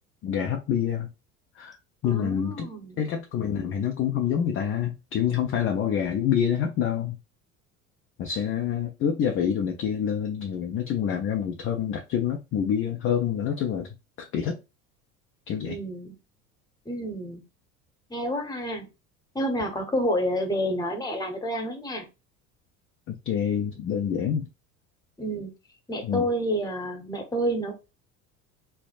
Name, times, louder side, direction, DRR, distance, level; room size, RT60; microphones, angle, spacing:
voice 1, 0.2-1.1 1.6-1.8 2.0-2.7 3.0-7.2 8.2-13.9 14.2-14.6 15.5-15.8 23.1-24.5 26.0-26.3, left 8 dB, 30° left, 0.5 m, -27 dB
voice 2, 2.0-3.0 15.6-16.1 16.9-17.4 18.1-18.9 19.3-22.1 25.2-25.5 25.9-27.7, equal, 10° left, 0.9 m, -29 dB
3.2 x 2.0 x 2.5 m
figure-of-eight pair, 70°, 44 cm